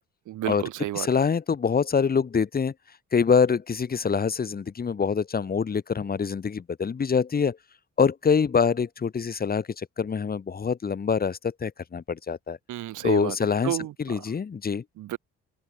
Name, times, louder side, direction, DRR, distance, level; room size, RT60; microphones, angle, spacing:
voice 1, 0.3-1.1 12.7-13.4 13.6-14.2 15.0-15.2, right 14 dB, 80° right, 1.8 m, -31 dB
voice 2, 1.0-2.7 3.1-7.6 8.0-12.6 13.0-14.8, left 6 dB, 30° left, 1.0 m, -25 dB
open air
cardioid pair, 90°, 30 cm